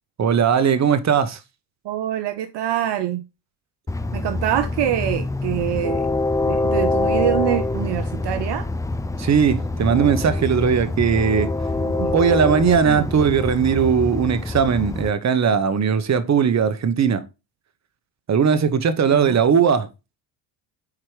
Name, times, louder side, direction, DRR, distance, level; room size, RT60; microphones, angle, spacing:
voice 1, 0.2-1.4 9.2-11.5 12.1-17.3 18.3-19.9, right 7 dB, 35° right, 0.9 m, -19 dB
voice 2, 1.8-3.2 4.1-6.1 6.5-8.7 11.8-12.1 12.8-13.1 19.1-19.4, right 12 dB, 60° right, 0.7 m, -25 dB
Train, 3.9-15.1, left 2 dB, 10° left, 0.3 m, -25 dB
4.8 x 4.4 x 4.8 m
supercardioid pair, 60°, 49 cm